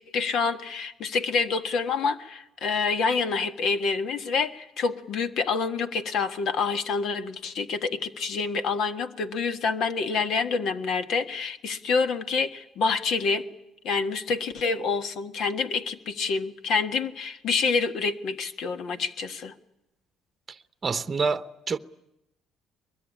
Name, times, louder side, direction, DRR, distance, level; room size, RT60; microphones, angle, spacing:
voice 1, 0.1-13.5 13.8-19.5, left 4 dB, 65° left, 1.6 m, -27 dB
voice 2, 20.8-21.8, right 4 dB, 30° right, 0.9 m, -27 dB
23.5 x 22.0 x 9.9 m
cardioid pair, 95°, 0 cm